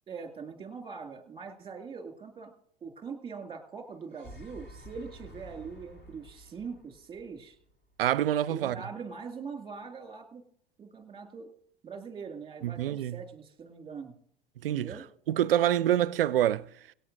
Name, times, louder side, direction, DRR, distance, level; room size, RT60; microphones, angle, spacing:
voice 1, 0.1-2.5 2.8-7.6 8.5-10.4 10.8-11.5 11.8-14.1 14.7-15.1, right 5 dB, 15° right, 2.2 m, -42 dB
sound 1, 3.9-8.1, equal, 35° left, 3.3 m, -50 dB
voice 2, 8.0-8.8 12.6-13.2 14.6-14.9 15.3-16.7, right 11 dB, 70° right, 0.5 m, -26 dB
23.5 x 9.1 x 2.6 m
figure-of-eight pair, 80°, 29 cm